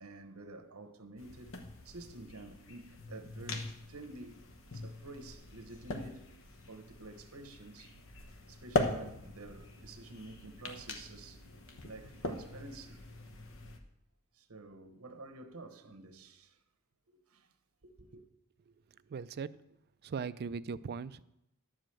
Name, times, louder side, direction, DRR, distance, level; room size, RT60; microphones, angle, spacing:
voice 1, 0.0-1.6 1.8-4.4 4.7-6.3 6.7-7.9 8.5-11.4 11.8-13.1 14.3-16.6 17.1-17.5 17.8-18.2, right 2 dB, 75° right, 1.0 m, -50 dB
sound 1, 1.2-13.8, left 2 dB, 65° left, 1.1 m, -41 dB
voice 2, 18.9-19.5 20.0-21.2, right 5 dB, 50° right, 0.4 m, -39 dB
11.0 x 5.0 x 7.6 m
head